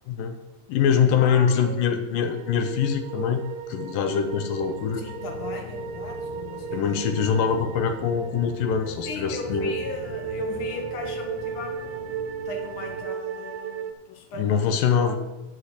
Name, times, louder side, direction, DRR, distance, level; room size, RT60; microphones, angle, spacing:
voice 1, 0.1-0.4 0.7-3.4 3.7-5.0 6.7-9.8 14.4-15.2, left 7 dB, 85° left, 7 dB, 2.5 m, -23 dB
voice 2, 0.9-1.7 2.2-2.4 4.9-7.0 9.0-14.7 15.0-15.2, left 4 dB, 50° left, 2 dB, 1.9 m, -37 dB
sound 1, 2.2-13.9, right 7 dB, 90° right, 2.4 m, -35 dB
sound 2, 2.9-13.0, left 2 dB, 65° left, 3.5 m, -42 dB
10.0 x 5.0 x 8.1 m, 1.0 s
omnidirectional pair, 3.9 m